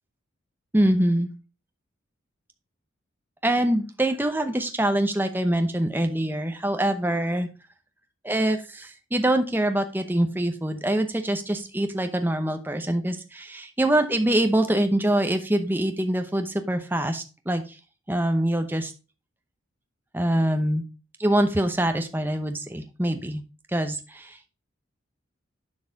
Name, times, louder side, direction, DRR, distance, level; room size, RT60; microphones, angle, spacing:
voice 1, 0.7-1.3 3.4-7.5 8.2-17.6 18.1-18.9 20.1-20.8 21.2-23.4 23.7-24.5, right 1 dB, 10° right, 7 dB, 0.8 m, -24 dB
10.5 x 4.7 x 3.5 m, 0.32 s
head